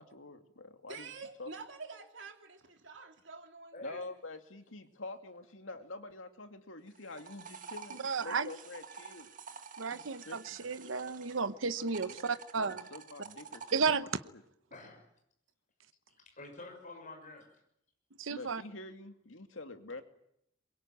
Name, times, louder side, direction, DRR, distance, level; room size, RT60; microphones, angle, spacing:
voice 1, 0.0-1.1 1.4-1.5 3.8-9.3 9.9-10.8 11.8-14.4 18.3-20.0, left 2 dB, 85° left, 2.4 m, -47 dB
voice 2, 0.9-4.0, right 4 dB, 70° right, 3.4 m, -48 dB
sound 1, 6.9-11.5 11.8-13.8, right 6 dB, 40° right, 1.9 m, -49 dB
voice 3, 8.0-8.5 9.8-12.8 13.7-14.1 18.2-18.6, right 5 dB, 85° right, 0.9 m, -33 dB
voice 4, 14.7-15.1 16.2-17.5, left 2 dB, 40° left, 6.4 m, -48 dB
23.0 x 22.0 x 9.1 m
head